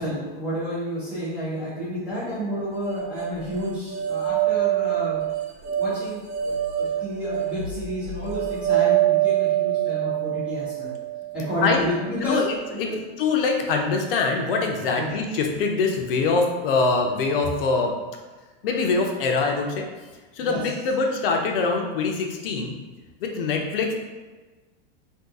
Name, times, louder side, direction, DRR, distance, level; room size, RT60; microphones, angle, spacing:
voice 1, 0.0-5.3 5.6-10.9 11.3-12.4 12.8-13.0 15.0-15.1 20.4-20.6, equal, 5° right, -12 dB, 0.4 m, -30 dB
sound 1, 2.8-12.0, right 12 dB, 75° right, 0.6 m, -25 dB
voice 2, 11.6-12.9 13.2-17.9 18.6-19.8 20.3-22.7 23.2-23.9, left 4 dB, 65° left, 2 dB, 0.6 m, -24 dB
2.7 x 2.3 x 3.5 m, 1.3 s
supercardioid pair, 175°, 30 cm